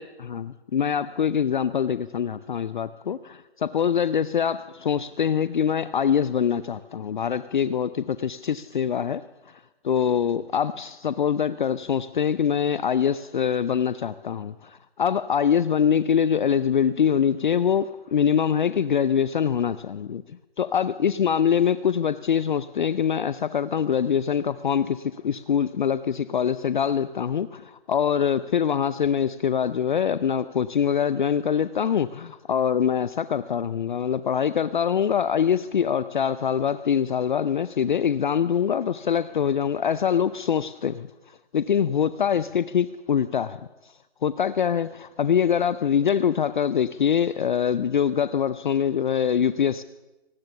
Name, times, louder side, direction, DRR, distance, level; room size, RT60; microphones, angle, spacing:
voice 1, 0.3-9.5 9.8-41.1 41.5-43.6 44.2-49.8, left 8 dB, 50° left, 0.7 m, -24 dB
25.5 x 18.0 x 6.9 m
figure-of-eight pair, 135°, 31 cm